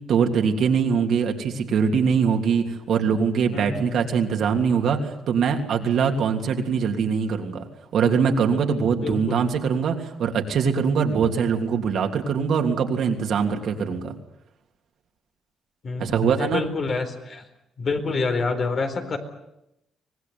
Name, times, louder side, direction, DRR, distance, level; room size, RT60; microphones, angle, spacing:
voice 1, 0.1-7.6 7.9-14.1 16.0-16.6, right 6 dB, 70° right, 3 dB, 3.2 m, -22 dB
voice 2, 3.5-4.2 9.0-9.4 15.8-17.4 17.8-19.2, left 4 dB, 50° left, 5 dB, 4.1 m, -27 dB
24.5 x 19.0 x 9.5 m, 0.86 s
cardioid pair, 90°, 0 cm